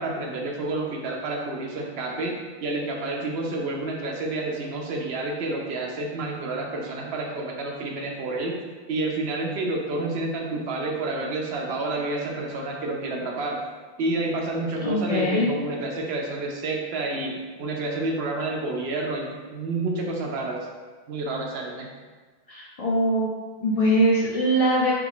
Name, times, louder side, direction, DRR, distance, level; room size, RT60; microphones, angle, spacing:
voice 1, 0.0-2.4 2.6-8.6 8.9-13.6 14.0-20.6 21.1-21.9, right 2 dB, 85° right, 0 dB, 0.9 m, -29 dB
voice 2, 14.8-15.5 22.5-23.3 23.6-24.9, equal, 50° left, -4 dB, 0.4 m, -22 dB
3.3 x 2.4 x 3.5 m, 1.4 s
omnidirectional pair, 1.0 m